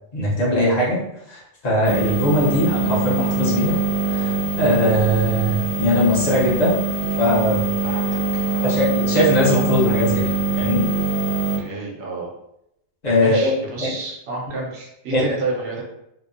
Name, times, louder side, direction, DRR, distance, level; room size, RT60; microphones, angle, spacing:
voice 1, 0.1-1.0 1.3-3.8 4.1-6.8 7.2-7.6 8.6-10.9 13.0-13.5 13.8-13.9 15.1-15.2, left 1 dB, 45° left, -5 dB, 0.6 m, -20 dB
sound 1, 1.8-11.6, right 4 dB, 90° left, 1.0 m, -23 dB
voice 2, 7.8-8.9 11.6-12.3 13.2-15.8, right 3 dB, 75° right, -2 dB, 1.0 m, -30 dB
2.7 x 2.0 x 2.5 m, 0.80 s
omnidirectional pair, 1.2 m